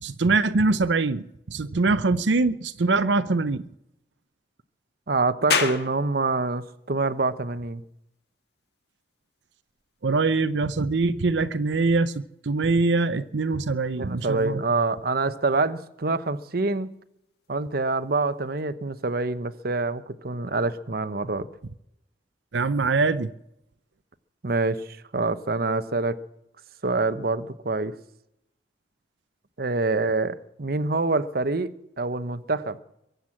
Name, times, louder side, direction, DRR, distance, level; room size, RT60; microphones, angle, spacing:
voice 1, 0.0-3.7 10.0-14.6 22.5-23.3, right 3 dB, 85° right, 0.7 m, -23 dB
voice 2, 5.1-7.8 13.9-16.9 17.5-21.5 24.4-24.8 25.1-26.2 26.8-27.9 29.6-32.8, right 3 dB, 55° right, 0.9 m, -26 dB
sound 1, 5.5-18.6, left 5 dB, 60° left, 1.9 m, -38 dB
23.0 x 8.1 x 7.3 m
head